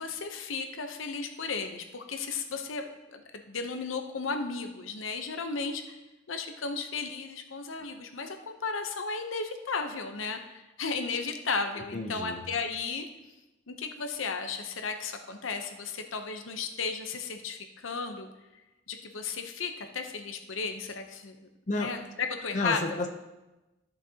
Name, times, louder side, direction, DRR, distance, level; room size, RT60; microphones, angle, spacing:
voice 1, 0.0-5.8 6.3-13.0 13.7-18.3 18.9-21.4 21.7-23.0, left 4 dB, 90° left, 6 dB, 0.8 m, -34 dB
voice 2, 11.9-12.4 21.7-21.9 22.5-23.1, left 2 dB, 40° left, 3 dB, 0.7 m, -31 dB
13.0 x 6.6 x 2.9 m, 1.0 s
head